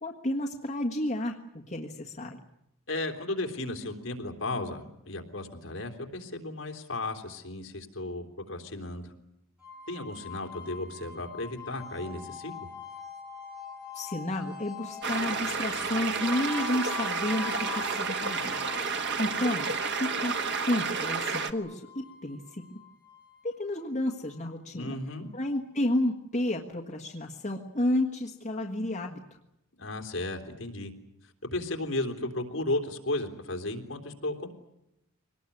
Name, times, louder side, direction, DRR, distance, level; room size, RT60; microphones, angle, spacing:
voice 1, 0.0-2.4 13.9-18.6 19.2-20.4 20.7-22.6 23.4-25.0 25.3-29.4, left 1 dB, 35° left, 0 dB, 1.6 m, -31 dB
voice 2, 2.9-9.1 9.9-12.7 24.7-25.3 29.7-30.9 31.2-34.5, left 2 dB, 60° left, 4 dB, 3.3 m, -34 dB
sound 1, 9.6-24.5, left 5 dB, 5° right, 7.2 m, -43 dB
sound 2, 15.0-21.5, right 5 dB, 50° right, 1.4 m, -31 dB
24.0 x 19.5 x 9.8 m, 0.83 s
head